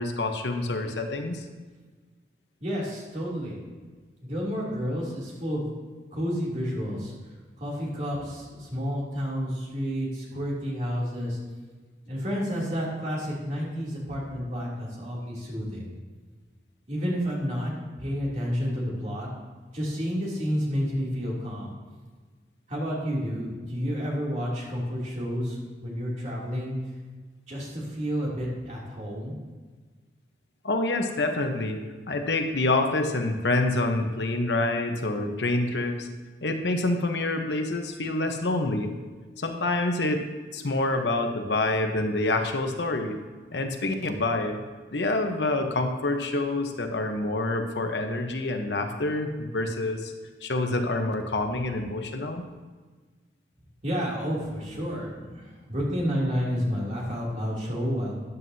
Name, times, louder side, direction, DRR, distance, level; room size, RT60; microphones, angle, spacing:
voice 1, 0.0-1.4 30.6-36.1 36.4-38.9 39.4-43.2 43.5-44.6 44.9-50.1 50.4-52.4, left 2 dB, 75° left, 5 dB, 1.0 m, -27 dB
voice 2, 2.6-3.6 4.2-5.7 6.1-7.1 7.6-11.4 12.1-15.9 16.9-17.7 18.0-19.3 19.7-21.7 22.7-26.7 27.5-29.4 53.8-55.4 55.7-58.2, equal, 40° right, -5 dB, 2.8 m, -30 dB
13.5 x 9.4 x 2.8 m, 1.4 s
head